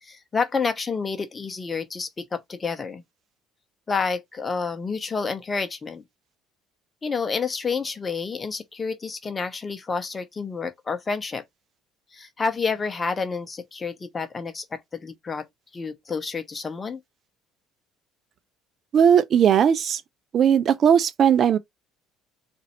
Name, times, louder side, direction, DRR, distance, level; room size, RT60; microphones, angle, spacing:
voice 1, 0.0-3.0 3.9-6.0 7.0-11.4 12.1-15.5 15.7-17.0, left 5 dB, 25° left, 0.8 m, -29 dB
voice 2, 18.9-20.0 20.3-21.6, right 8 dB, 50° right, 0.7 m, -18 dB
4.0 x 2.6 x 4.3 m
supercardioid pair, 90°, 0 cm